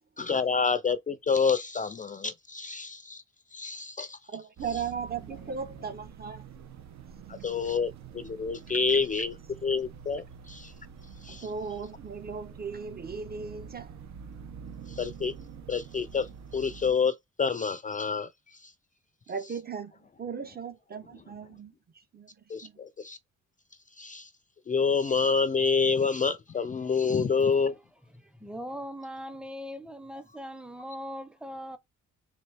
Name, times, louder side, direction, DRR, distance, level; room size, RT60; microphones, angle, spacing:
voice 1, 0.2-3.2 3.5-4.2 4.7-4.8 7.3-9.4 9.6-10.7 11.2-11.5 14.9-15.3 15.7-16.3 16.5-18.3 18.6-18.7 22.5-23.2 24.0-24.3 24.7-27.8, left 5 dB, 25° left, 0.4 m, -28 dB
voice 2, 4.3-6.4 11.3-13.9 19.3-19.9 20.2-21.7 22.1-22.3 22.6-22.7, right 6 dB, 30° right, 0.7 m, -37 dB
sound 1, 4.6-16.9, right 7 dB, 65° right, 0.9 m, -46 dB
voice 3, 28.1-31.8, equal, 5° right, 0.7 m, -40 dB
4.1 x 2.7 x 3.3 m
cardioid pair, 90°, 30 cm